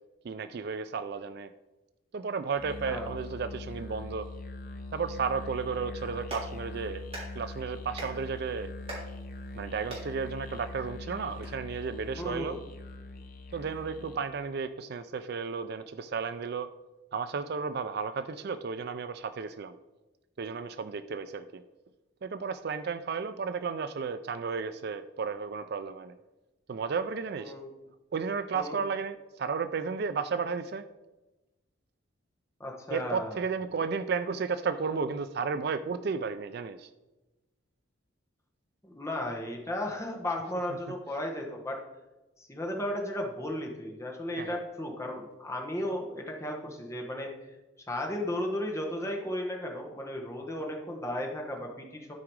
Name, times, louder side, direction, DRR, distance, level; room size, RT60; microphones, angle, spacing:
voice 1, 0.2-1.5 2.1-4.3 4.9-7.0 7.4-8.7 9.5-12.6 13.5-16.7 17.1-19.7 20.4-21.6 22.2-26.1 26.7-27.5 28.1-30.8 32.9-36.9 44.4-44.6, right 5 dB, 50° right, 12 dB, 0.4 m, -33 dB
Musical instrument, 2.5-14.3, left 2 dB, 40° left, 0.8 m, -42 dB
Clapping, 6.0-11.5, right 1 dB, 30° right, 3.2 m, -45 dB
voice 2, 12.1-12.6 27.4-27.7 28.5-28.8 32.6-33.4 38.8-41.8 42.4-47.3 47.9-52.1, left 1 dB, 15° left, 0 dB, 1.3 m, -35 dB
12.5 x 4.9 x 4.7 m, 1.1 s
head